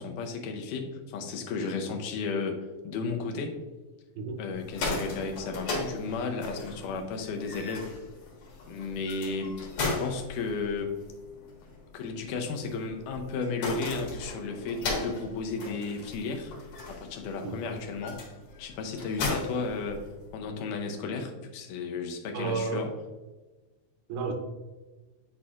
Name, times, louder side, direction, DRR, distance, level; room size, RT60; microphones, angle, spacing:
voice 1, 0.0-3.6 4.4-7.9 8.7-9.6 9.8-11.0 11.9-16.5 16.9-18.2 18.6-20.1 20.3-22.9, left 4 dB, 85° left, 3 dB, 2.3 m, -34 dB
sound 1, 4.5-20.5, left 3 dB, 65° left, 2.8 m, -37 dB
voice 2, 22.3-22.8 24.1-24.3, right 4 dB, 75° right, 3 dB, 2.0 m, -31 dB
9.2 x 4.3 x 2.4 m, 1.2 s
omnidirectional pair, 3.7 m